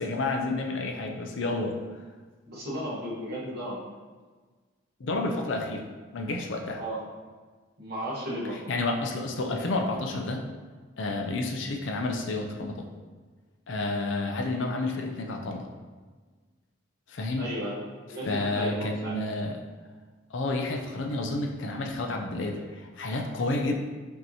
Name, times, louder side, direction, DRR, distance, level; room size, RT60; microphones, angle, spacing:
voice 1, 0.0-1.8 5.0-5.8 6.1-6.8 8.5-10.4 11.0-12.9 13.7-15.7 17.1-17.5 18.2-19.5 20.3-23.7, left 2 dB, 65° left, 2 dB, 0.5 m, -30 dB
voice 2, 2.5-4.0 6.7-7.0 7.8-8.6 14.4-14.7 17.4-19.1, equal, 50° right, -7 dB, 1.3 m, -35 dB
5.4 x 2.8 x 2.8 m, 1.4 s
head